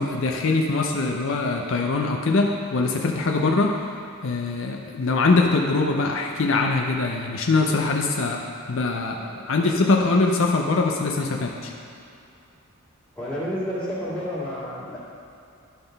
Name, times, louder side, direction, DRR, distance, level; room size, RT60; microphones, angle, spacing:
voice 1, 0.0-3.8 4.2-11.7, left 3 dB, 60° left, 1 dB, 0.5 m, -23 dB
voice 2, 13.1-15.0, equal, 5° left, -10 dB, 2.1 m, -30 dB
11.5 x 3.9 x 5.2 m, 2.7 s
head